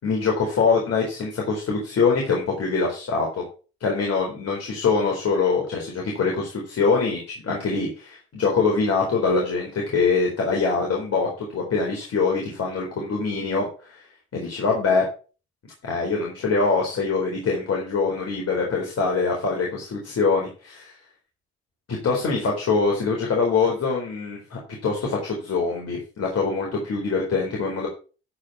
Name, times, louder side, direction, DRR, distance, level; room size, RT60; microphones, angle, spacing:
voice 1, 0.0-3.4 3.8-14.0 14.3-15.1 15.8-20.9 22.0-27.9, left 4 dB, 50° left, -1 dB, 4.1 m, -24 dB
12.5 x 5.0 x 5.9 m, 0.36 s
hypercardioid pair, 60°, 31 cm